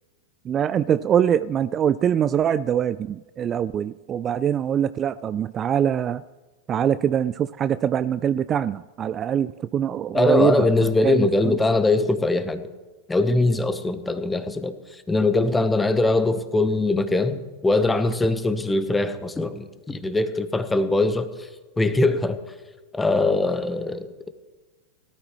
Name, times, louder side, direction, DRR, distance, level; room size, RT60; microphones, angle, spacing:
voice 1, 0.5-6.2 6.7-10.7 11.0-11.6, right 9 dB, 30° right, 15 dB, 0.3 m, -23 dB
voice 2, 10.1-12.6 13.1-14.8 15.1-21.3 21.8-22.4 22.9-24.3, left 2 dB, 10° left, 10 dB, 1.1 m, -22 dB
18.0 x 12.5 x 3.2 m, 1.3 s
hypercardioid pair, 100°, 0 cm